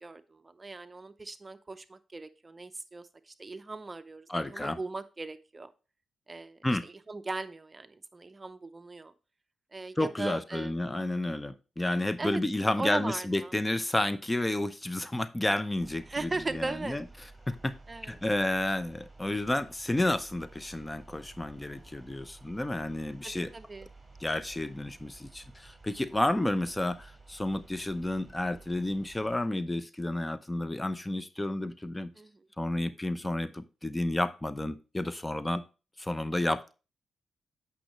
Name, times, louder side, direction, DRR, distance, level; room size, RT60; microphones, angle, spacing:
voice 1, 0.0-5.7 6.3-9.1 9.7-10.9 12.2-12.4 12.8-13.5 16.1-17.0 17.9-18.2 23.2-23.9 32.2-32.5, right 3 dB, 30° right, 0.6 m, -38 dB
voice 2, 4.3-4.8 6.6-6.8 10.0-17.0 17.5-17.7 18.0-23.5 24.2-32.1 32.6-35.6 36.0-36.7, left 1 dB, 15° left, 0.7 m, -31 dB
sound 1, 15.8-29.5, right 3 dB, 10° right, 3.2 m, -53 dB
8.8 x 5.6 x 3.1 m
supercardioid pair, 50°, 0 cm